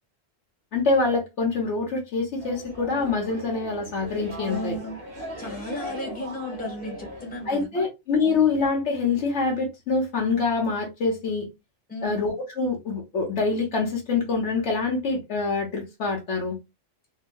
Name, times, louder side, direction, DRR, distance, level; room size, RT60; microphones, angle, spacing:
voice 1, 0.7-4.8 7.5-11.5 12.0-16.6, left 4 dB, 65° left, 1.2 m, -25 dB
sound 1, 2.4-7.5, equal, 50° right, 1.2 m, -38 dB
voice 2, 4.4-5.0 5.4-7.9 8.2-8.5 11.9-12.3, left 1 dB, 5° left, 1.1 m, -35 dB
3.6 x 2.2 x 2.2 m
omnidirectional pair, 1.3 m